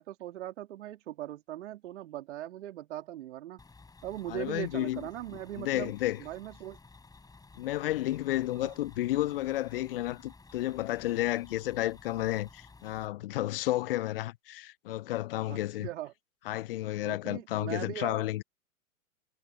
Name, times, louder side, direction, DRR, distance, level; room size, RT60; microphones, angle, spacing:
voice 1, 0.0-3.6 4.0-5.9 6.2-6.8 8.6-8.7 15.5-16.1 17.0-18.2, right 13 dB, 55° right, 3.0 m, -40 dB
sound 1, 3.6-13.1, left 3 dB, 10° left, 4.4 m, -55 dB
voice 2, 4.3-5.0 5.6-6.2 7.6-15.9 16.5-18.4, left 15 dB, 45° left, 0.5 m, -32 dB
figure-of-eight pair, 105°, 42 cm